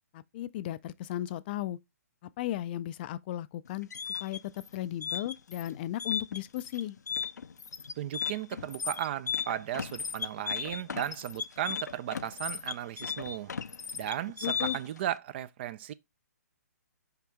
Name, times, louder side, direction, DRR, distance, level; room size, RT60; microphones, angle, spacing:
voice 1, 0.1-1.8 2.2-3.9 4.2-7.0 14.4-14.8, left 13 dB, 35° left, 0.4 m, -35 dB
sound 1, 3.7-15.0, left 7 dB, 80° left, 0.6 m, -36 dB
voice 2, 8.0-13.5 13.9-15.9, right 12 dB, 40° right, 0.5 m, -35 dB
5.8 x 5.2 x 3.6 m
hypercardioid pair, 135°, 9 cm